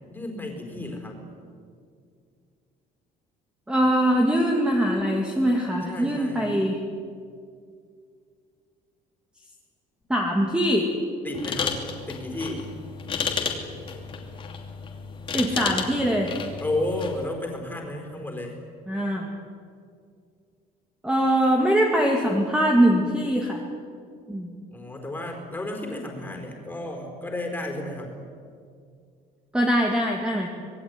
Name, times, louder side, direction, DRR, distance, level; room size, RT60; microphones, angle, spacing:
voice 1, 0.1-1.2 5.9-6.5 11.2-12.7 16.6-18.6 24.7-28.1, left 1 dB, 10° left, 3 dB, 4.7 m, -32 dB
voice 2, 3.7-6.8 10.1-10.9 15.3-16.3 18.9-19.3 21.0-23.6 24.3-24.5 29.5-30.5, equal, 5° right, 0 dB, 2.2 m, -22 dB
sound 1, 11.3-17.3, left 6 dB, 30° left, 2.9 m, -32 dB
26.0 x 20.5 x 9.7 m, 2.3 s
cardioid pair, 170°, 17 cm